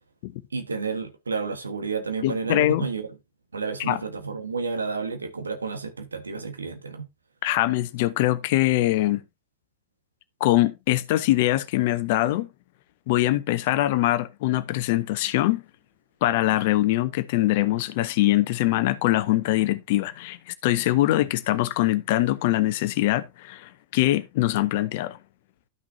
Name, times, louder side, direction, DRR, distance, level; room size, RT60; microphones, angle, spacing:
voice 1, 0.5-3.1 3.5-7.1, right 4 dB, 75° right, 1.5 m, -31 dB
voice 2, 2.2-2.9 3.9-4.0 7.4-9.2 10.4-12.5 13.1-15.6 16.2-25.2, left 16 dB, 50° left, 0.6 m, -23 dB
12.0 x 6.0 x 2.8 m
figure-of-eight pair, 90°, 0 cm